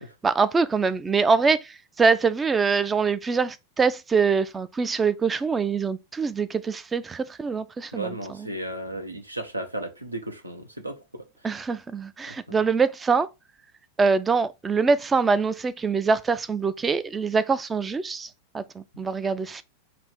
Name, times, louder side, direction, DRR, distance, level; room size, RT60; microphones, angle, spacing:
voice 1, 0.2-8.5 11.4-13.3 14.0-18.3 18.5-19.6, right 5 dB, 15° right, 0.3 m, -24 dB
voice 2, 7.9-11.2 12.5-12.6 19.2-19.3, right 1 dB, 85° right, 0.8 m, -34 dB
5.0 x 2.5 x 3.5 m
figure-of-eight pair, 90°, 0 cm